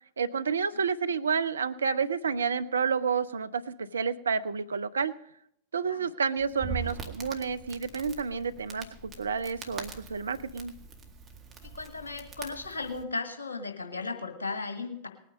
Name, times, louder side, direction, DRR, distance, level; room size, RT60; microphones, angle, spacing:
voice 1, 0.2-5.1 5.7-10.7, right 6 dB, 70° right, 12 dB, 0.6 m, -30 dB
Crackle, 6.4-13.0, right 5 dB, 25° right, 1.9 m, -43 dB
voice 2, 11.6-15.1, left 3 dB, 75° left, 6 dB, 1.7 m, -36 dB
19.5 x 9.3 x 5.2 m, 0.76 s
figure-of-eight pair, 90°, 0 cm